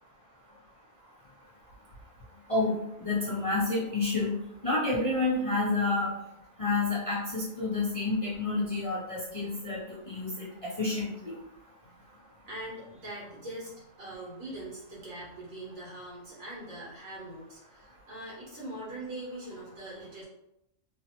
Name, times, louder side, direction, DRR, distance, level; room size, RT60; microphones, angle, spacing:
voice 1, 3.0-4.4 4.6-6.1 6.6-11.4, left 3 dB, 40° left, -7 dB, 0.5 m, -29 dB
voice 2, 12.4-20.2, right 1 dB, 80° right, -6 dB, 1.7 m, -42 dB
3.2 x 2.0 x 2.8 m, 0.83 s
omnidirectional pair, 1.4 m